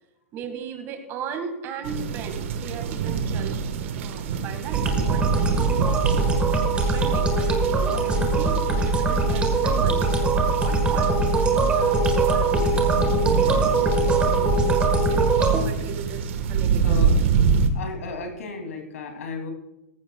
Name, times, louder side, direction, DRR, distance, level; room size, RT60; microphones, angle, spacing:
voice 1, 0.3-6.4 6.7-13.0 15.1-17.0, right 5 dB, 30° right, 6 dB, 1.8 m, -37 dB
sound 1, 1.8-17.7, right 6 dB, 60° right, 1.4 m, -27 dB
sound 2, 4.7-15.6, right 3 dB, 15° right, 1.5 m, -22 dB
voice 2, 14.1-14.8 16.8-17.2 17.7-19.5, left 3 dB, 90° left, 3 dB, 2.8 m, -34 dB
17.5 x 15.0 x 2.3 m, 0.92 s
supercardioid pair, 155°, 8 cm